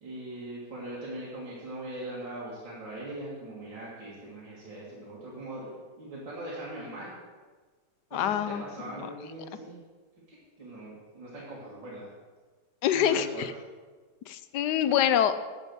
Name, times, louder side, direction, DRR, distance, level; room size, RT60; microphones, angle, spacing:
voice 1, 0.0-7.1 8.1-9.8 10.3-12.1 12.9-13.5, right 1 dB, 85° right, -7 dB, 2.7 m, -41 dB
voice 2, 8.1-9.1 12.8-13.5 14.3-15.5, left 9 dB, 75° left, 12 dB, 1.2 m, -26 dB
11.0 x 5.3 x 7.7 m, 1.4 s
omnidirectional pair, 1.9 m